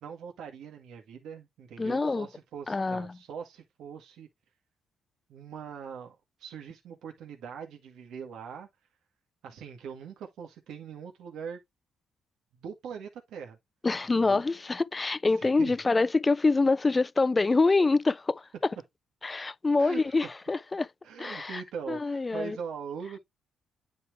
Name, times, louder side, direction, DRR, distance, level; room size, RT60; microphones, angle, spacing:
voice 1, 0.0-4.3 5.3-8.7 9.4-11.6 12.6-13.6 14.3-14.4 15.3-15.8 19.8-20.1 21.0-23.2, right 7 dB, 80° right, 1.7 m, -41 dB
voice 2, 1.8-2.3 2.7-3.2 13.8-18.7 19.2-20.9 21.2-21.6 21.9-22.6, left 3 dB, 25° left, 0.3 m, -26 dB
9.8 x 4.2 x 3.3 m
cardioid pair, 90°, 0 cm